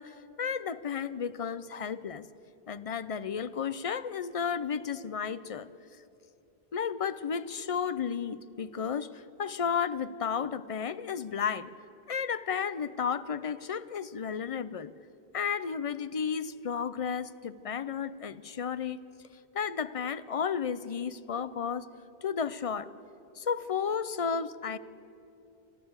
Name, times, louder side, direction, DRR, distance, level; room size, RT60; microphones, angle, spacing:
voice 1, 0.0-2.2 2.7-5.7 6.7-11.7 12.1-14.9 15.3-19.0 19.5-21.9 22.2-22.9 23.4-24.8, left 7 dB, 45° left, 15 dB, 0.5 m, -33 dB
28.5 x 12.0 x 8.0 m, 2.8 s
omnidirectional pair, 1.1 m